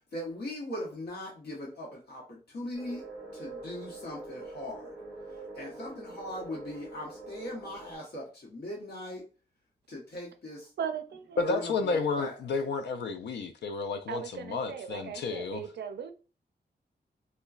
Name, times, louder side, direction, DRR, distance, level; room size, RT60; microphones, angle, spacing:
voice 1, 0.1-3.0 3.3-4.9 5.5-9.2 9.9-10.7 11.4-12.4, left 1 dB, 70° left, 0.9 m, -39 dB
sound 1, 2.7-8.0, right 2 dB, 5° left, 1.0 m, -44 dB
voice 2, 10.8-11.4 14.1-16.1, right 7 dB, 90° right, 0.4 m, -38 dB
voice 3, 11.4-15.6, left 4 dB, 85° left, 0.4 m, -31 dB
3.7 x 2.1 x 2.3 m
wide cardioid pair, 165°, 17 cm